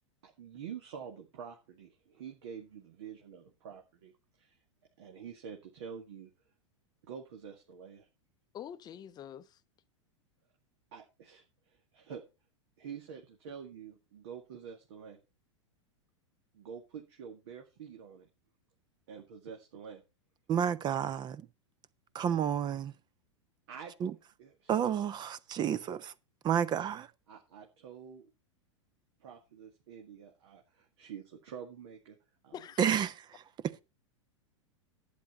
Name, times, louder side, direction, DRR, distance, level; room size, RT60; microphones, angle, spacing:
voice 1, 0.2-4.6 5.0-6.3 7.0-8.1 10.9-12.2 12.8-15.2 16.5-18.3 19.1-20.0 23.7-24.0 24.4-24.7 27.3-28.3 29.2-32.2 32.4-32.6, right 7 dB, 60° right, 1.9 m, -47 dB
voice 2, 8.5-9.6 32.5-32.8, left 9 dB, 25° left, 0.7 m, -45 dB
voice 3, 20.5-21.5 22.1-22.9 24.0-24.1 24.7-26.1 26.4-27.1 32.8-33.4, right 8 dB, 25° right, 0.8 m, -30 dB
11.5 x 9.0 x 4.1 m
figure-of-eight pair, 95°, 16 cm